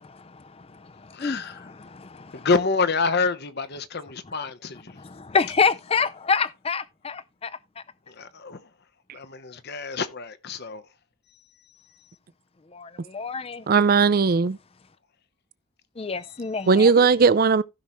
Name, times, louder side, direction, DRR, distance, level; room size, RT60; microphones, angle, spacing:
voice 1, 0.0-2.5 5.0-7.8 12.7-13.7 16.0-17.1, left 5 dB, 25° left, 0.5 m, -28 dB
voice 2, 1.1-1.6 2.3-5.0 8.1-8.6 9.1-10.8, left 4 dB, 45° left, 0.9 m, -27 dB
voice 3, 13.7-14.6 16.7-17.6, right 5 dB, 40° right, 0.4 m, -18 dB
15.5 x 5.7 x 3.1 m
head